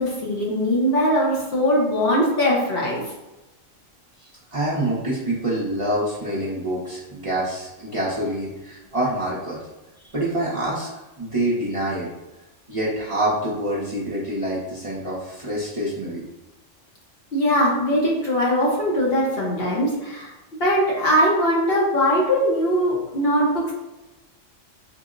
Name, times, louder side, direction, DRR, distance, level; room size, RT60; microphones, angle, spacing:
voice 1, 0.0-3.0 17.3-20.3 20.6-23.7, equal, 55° left, -4 dB, 0.9 m, -21 dB
voice 2, 4.5-9.6 10.1-10.9 11.2-12.1 12.7-16.2, right 1 dB, 35° right, -7 dB, 0.6 m, -26 dB
3.8 x 2.1 x 3.6 m, 1.0 s
omnidirectional pair, 1.3 m